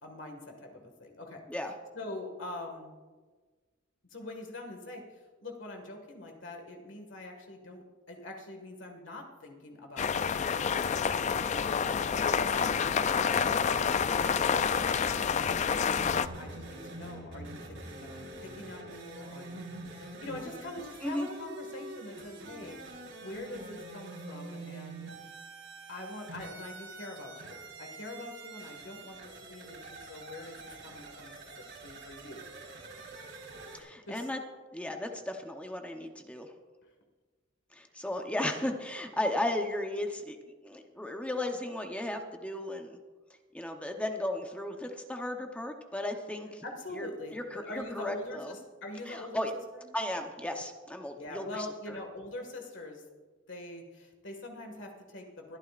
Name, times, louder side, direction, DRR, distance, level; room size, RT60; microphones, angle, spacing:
voice 1, 0.0-1.4 1.9-2.9 4.1-10.1 11.3-15.1 15.7-25.1 25.9-31.3 31.6-32.4 34.0-34.3 46.6-49.4 49.7-49.9 51.1-53.0 53.5-55.6, left 2 dB, 65° left, 3 dB, 1.8 m, -44 dB
sound 1, 10.0-16.3, left 6 dB, 35° left, 0.3 m, -28 dB
sound 2, 16.0-33.8, right 2 dB, 85° right, 4.4 m, -46 dB
voice 2, 33.7-34.4 34.7-36.5 37.7-40.4 40.6-43.0 43.5-46.6 46.9-47.1 47.3-48.5 49.1-49.5 49.9-52.0, left 1 dB, 5° left, 4 dB, 0.8 m, -35 dB
22.0 x 12.0 x 2.5 m, 1.4 s
head